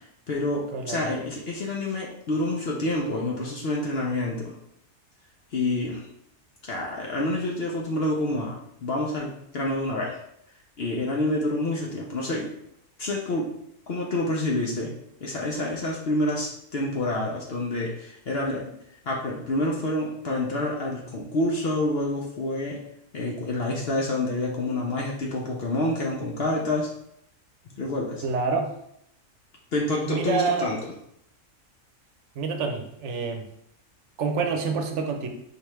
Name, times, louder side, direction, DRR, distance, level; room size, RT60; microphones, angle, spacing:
voice 1, 0.0-4.6 5.5-6.1 6.6-10.2 10.8-12.5 13.0-13.5 13.9-14.9 15.2-18.7 19.1-22.8 23.1-26.9 27.7-28.2 29.7-30.8, left 1 dB, 55° left, -2 dB, 0.8 m, -28 dB
voice 2, 0.7-1.2 28.2-28.7 30.1-30.7 32.4-33.5 34.2-35.3, right 5 dB, 65° right, 4 dB, 1.0 m, -27 dB
4.7 x 3.3 x 3.1 m, 0.75 s
omnidirectional pair, 1.3 m